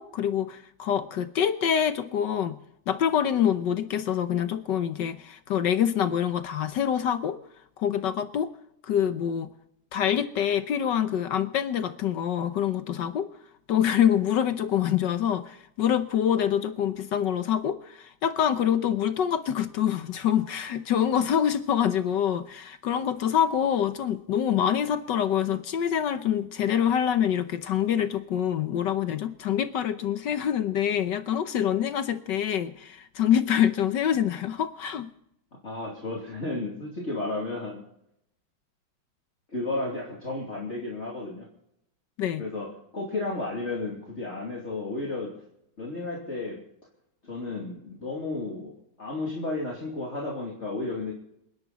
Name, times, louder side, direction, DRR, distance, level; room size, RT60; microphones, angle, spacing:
voice 1, 0.0-2.6 2.9-7.4 7.8-8.5 8.8-9.5 9.9-13.3 13.7-35.1 42.2-42.4, left 9 dB, 65° left, 11 dB, 1.4 m, -26 dB
voice 2, 35.6-37.8 39.5-41.5 42.4-45.4 45.8-46.6 47.2-48.7 49.0-51.1, left 2 dB, 35° left, -3 dB, 3.2 m, -33 dB
28.0 x 11.0 x 4.1 m, 0.78 s
omnidirectional pair, 2.2 m